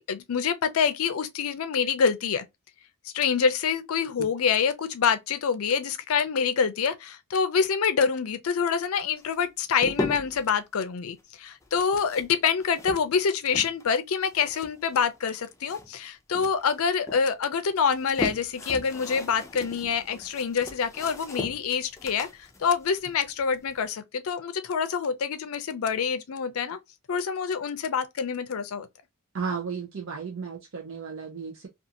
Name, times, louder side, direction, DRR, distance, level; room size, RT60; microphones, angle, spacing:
voice 1, 0.0-2.4 3.0-22.3 22.6-26.8 27.1-28.9, left 6 dB, 75° left, 0.5 m, -26 dB
sound 1, 9.2-10.5 11.6-13.9 14.2-16.1 16.3-17.2 17.7-23.8, left 2 dB, 15° left, 0.4 m, -38 dB
voice 2, 29.3-31.7, right 5 dB, 60° right, 0.5 m, -34 dB
2.5 x 2.4 x 2.7 m
head